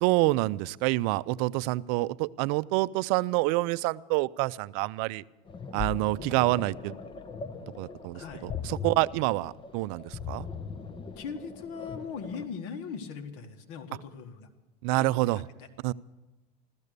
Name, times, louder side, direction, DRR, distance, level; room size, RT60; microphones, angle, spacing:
voice 1, 0.0-5.2 5.7-6.9 7.8-10.5 14.8-15.4 15.8-15.9, right 19 dB, 65° right, 18 dB, 0.5 m, -27 dB
sound 1, 5.5-12.5, left 5 dB, 25° left, 1.0 m, -40 dB
voice 2, 8.1-8.5 11.2-14.5 15.0-15.7, left 6 dB, 65° left, 7 dB, 1.8 m, -40 dB
15.5 x 13.5 x 6.7 m, 1.1 s
supercardioid pair, 115°, 20 cm